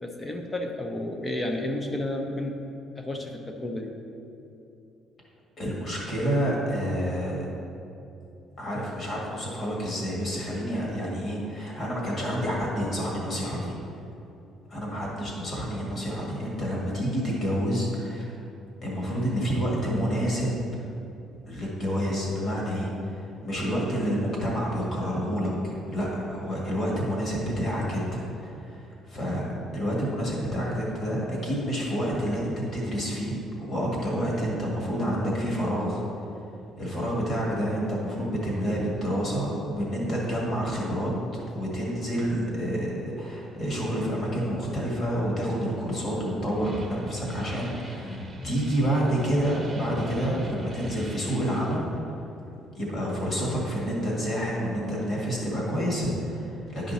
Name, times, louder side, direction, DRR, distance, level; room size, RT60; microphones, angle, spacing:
voice 1, 0.0-2.6 3.0-4.0, left 1 dB, 15° left, 4 dB, 0.7 m, -31 dB
voice 2, 5.6-7.5 8.6-13.7 14.7-18.4 18.8-20.6 21.5-29.5 29.7-36.0 36.8-41.1 41.5-51.9 52.7-56.9, equal, 35° left, -4 dB, 1.9 m, -28 dB
sound 1, 46.5-51.8, equal, 15° right, 0.9 m, -40 dB
10.5 x 5.1 x 4.1 m, 2.8 s
cardioid pair, 150°, 0 cm